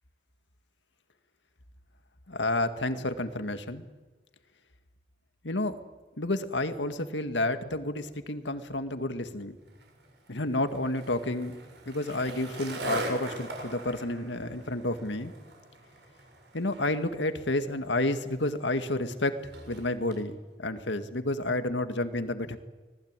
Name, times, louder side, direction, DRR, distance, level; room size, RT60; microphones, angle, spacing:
voice 1, 2.3-3.8 5.4-5.8 6.2-9.6 10.3-11.6 11.9-15.3 16.5-19.4 19.7-22.6, left 2 dB, 75° left, 9 dB, 2.0 m, -30 dB
Skateboard, 9.7-20.2, right 2 dB, 70° right, 7.1 m, -42 dB
25.0 x 19.5 x 9.0 m, 1.3 s
head